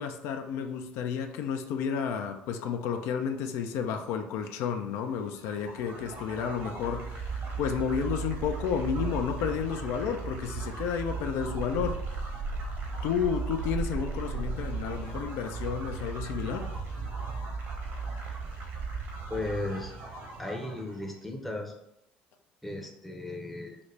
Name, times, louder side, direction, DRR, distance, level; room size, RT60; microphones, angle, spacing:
voice 1, 0.0-12.3 13.0-16.7, left 7 dB, 70° left, 6 dB, 0.4 m, -31 dB
sound 1, 5.4-21.0, right 4 dB, 55° right, 1.0 m, -36 dB
voice 2, 19.3-19.9 20.4-21.7 22.6-23.8, left 2 dB, 5° left, 1 dB, 0.6 m, -35 dB
3.7 x 2.1 x 3.2 m, 0.83 s
supercardioid pair, 80°, 5 cm